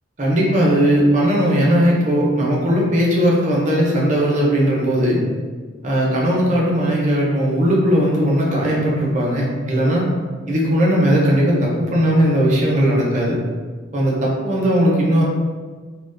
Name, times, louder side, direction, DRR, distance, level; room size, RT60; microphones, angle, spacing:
voice 1, 0.2-5.2 5.8-10.0 10.5-13.4 13.9-15.2, equal, 40° right, -4 dB, 0.5 m, -18 dB
2.3 x 2.1 x 2.4 m, 1.4 s
head